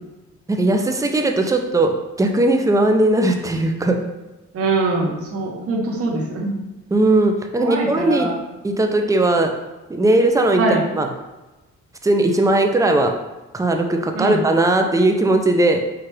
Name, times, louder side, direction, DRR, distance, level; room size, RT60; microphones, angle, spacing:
voice 1, 0.5-4.0 6.9-8.3 8.6-9.5 9.9-11.1 12.0-13.1 13.5-15.8, right 2 dB, 10° right, 4 dB, 0.4 m, -18 dB
voice 2, 4.5-6.5 7.6-8.4 10.6-10.8 14.1-14.4, right 3 dB, 50° right, -1 dB, 0.9 m, -22 dB
4.5 x 2.4 x 3.2 m, 1.1 s
cardioid pair, 90°, 30 cm